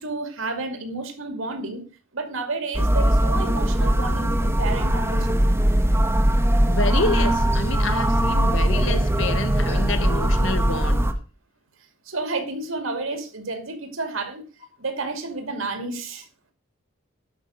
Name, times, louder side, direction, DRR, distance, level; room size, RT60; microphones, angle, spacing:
voice 1, 0.0-1.8 2.1-5.5 12.1-14.4 14.8-16.2, right 3 dB, 70° right, 2.5 m, -31 dB
sound 1, 2.7-11.1, right 1 dB, 10° right, 1.1 m, -20 dB
voice 2, 6.7-11.0, left 2 dB, 65° left, 1.3 m, -28 dB
11.5 x 5.8 x 6.4 m
head